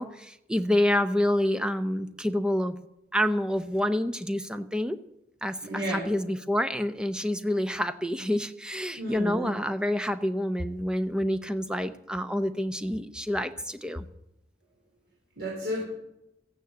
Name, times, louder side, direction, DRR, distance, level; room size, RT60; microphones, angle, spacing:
voice 1, 0.0-2.8 3.1-5.0 5.4-14.1, left 1 dB, 5° right, 10 dB, 0.7 m, -28 dB
voice 2, 5.6-6.1 9.0-9.5 15.4-15.9, equal, 65° right, -4 dB, 4.2 m, -32 dB
14.5 x 9.3 x 8.0 m, 0.87 s
head